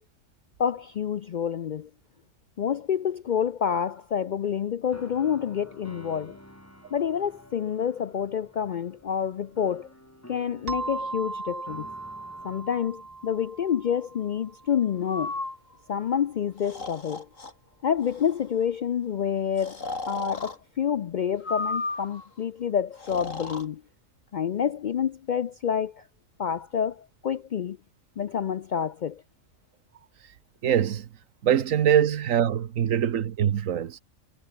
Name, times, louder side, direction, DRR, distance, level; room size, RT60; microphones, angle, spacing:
voice 1, 0.6-1.9 2.6-6.4 6.9-9.9 10.3-11.9 12.4-15.3 15.9-17.3 17.8-23.8 24.3-26.1 26.4-27.8 28.2-29.2, left 8 dB, 65° left, 0.4 m, -28 dB
sound 1, 4.8-13.3, left 1 dB, 10° left, 4.2 m, -50 dB
sound 2, 10.7-15.1, right 3 dB, 50° right, 2.7 m, -38 dB
Breathing, 15.0-15.6 16.6-17.5 18.0-18.4 19.6-20.6 21.4-22.3 23.0-23.6, left 3 dB, 85° left, 4.1 m, -34 dB
voice 2, 30.6-31.1 31.4-34.0, right 9 dB, 85° right, 1.4 m, -23 dB
omnidirectional pair, 1.3 m